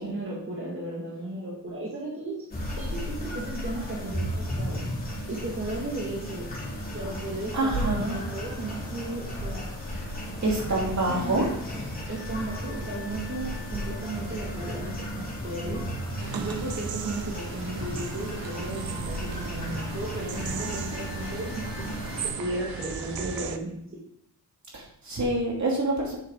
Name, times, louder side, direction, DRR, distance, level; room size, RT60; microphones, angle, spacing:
voice 1, 0.0-2.3 2.8-4.8 5.3-6.5 6.9-9.7 10.7-10.8 11.1-11.5 12.1-15.8 16.3-23.8, right 2 dB, 35° right, -4 dB, 2.1 m, -35 dB
sound 1, 2.5-22.3, equal, 25° left, 3.0 m, -35 dB
voice 2, 7.5-8.2 10.4-11.5 20.6-20.8 24.7-26.2, right 2 dB, 50° right, -2 dB, 2.7 m, -26 dB
sound 2, 8.0-23.4, left 1 dB, 5° right, 3.0 m, -43 dB
sound 3, 16.2-23.6, right 9 dB, 80° right, 0.7 m, -38 dB
8.1 x 6.6 x 3.8 m, 0.71 s
cardioid pair, 85°, 35 cm